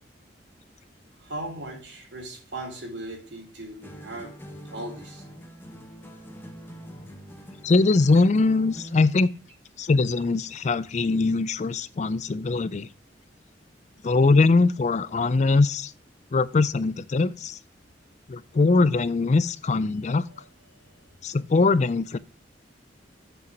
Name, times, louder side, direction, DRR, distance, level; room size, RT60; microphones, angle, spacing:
voice 1, 1.2-5.3 20.3-20.4 20.7-21.0, right 1 dB, 80° right, 3.5 m, -38 dB
sound 1, 3.8-9.1, equal, 15° left, 1.2 m, -44 dB
voice 2, 7.6-9.3 9.8-12.9 14.0-15.9 16.3-17.6 18.3-20.3 21.2-22.2, left 3 dB, 40° left, 0.4 m, -22 dB
7.8 x 5.7 x 6.0 m
head